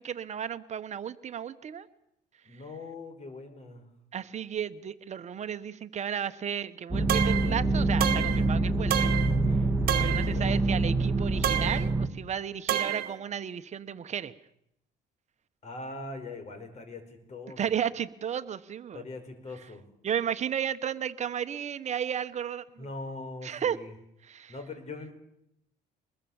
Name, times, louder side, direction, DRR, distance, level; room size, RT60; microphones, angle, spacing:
voice 1, 0.0-1.9 4.1-9.1 10.0-14.3 17.6-19.0 20.0-22.9 23.4-23.8 24.2-24.5, right 8 dB, 45° right, 11 dB, 1.3 m, -33 dB
voice 2, 2.4-3.9 10.2-10.7 15.6-17.8 18.9-19.9 22.8-23.9 24.5-25.1, left 2 dB, 40° left, 8 dB, 5.0 m, -41 dB
sound 1, 6.9-12.1, right 2 dB, 10° right, 2.0 m, -26 dB
sound 2, 7.1-7.5 8.0-8.5 8.9-9.4 9.9-10.3 11.4-11.9 12.7-13.1, right 11 dB, 65° right, 1.7 m, -28 dB
24.0 x 21.0 x 7.3 m, 0.77 s
cardioid pair, 110°, 17 cm